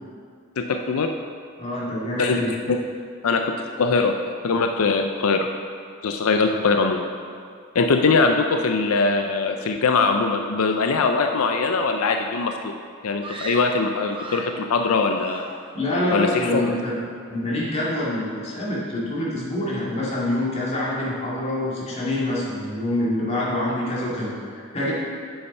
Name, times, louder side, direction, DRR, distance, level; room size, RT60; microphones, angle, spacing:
voice 1, 0.6-1.1 2.2-2.8 3.2-4.1 4.4-5.5 6.0-7.1 7.7-12.7 13.0-15.4 16.1-16.7, left 4 dB, 90° left, 5 dB, 0.5 m, -22 dB
voice 2, 1.6-2.5 6.5-6.6 15.7-16.9 17.3-24.9, left 1 dB, 30° left, -7 dB, 2.3 m, -26 dB
Screaming, 13.2-14.6 15.2-15.8 16.1-16.5, right 2 dB, 25° right, 0.7 m, -37 dB
8.5 x 7.1 x 5.4 m, 2.2 s
head